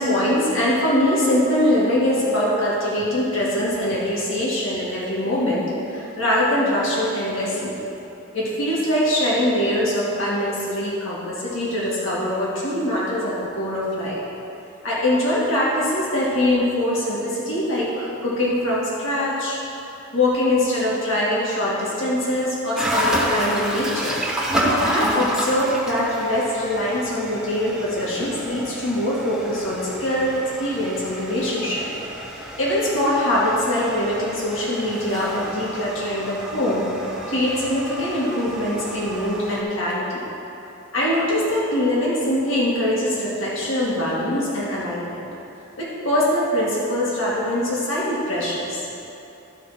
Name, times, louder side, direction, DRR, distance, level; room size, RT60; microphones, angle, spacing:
voice 1, 0.0-7.7 8.3-14.2 14.8-19.6 20.1-24.2 24.8-30.3 30.6-31.8 32.6-36.9 37.3-40.2 40.9-45.2 45.8-48.8, left 1 dB, 75° left, -7 dB, 2.2 m, -23 dB
sound 1, 22.8-39.6, equal, 5° right, 1.1 m, -29 dB
13.5 x 4.6 x 5.9 m, 2.9 s
head